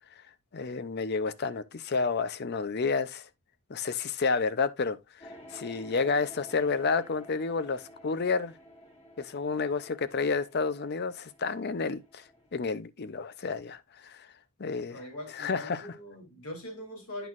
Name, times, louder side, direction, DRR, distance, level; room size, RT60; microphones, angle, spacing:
voice 1, 0.5-3.3 3.7-5.0 5.5-8.5 9.2-12.2 12.5-14.3 14.6-15.0 15.3-15.9, left 4 dB, 50° left, 0.5 m, -30 dB
sound 1, 5.2-12.6, equal, 25° left, 2.0 m, -52 dB
voice 2, 14.9-17.3, left 1 dB, 80° left, 3.1 m, -42 dB
9.0 x 6.2 x 2.5 m
head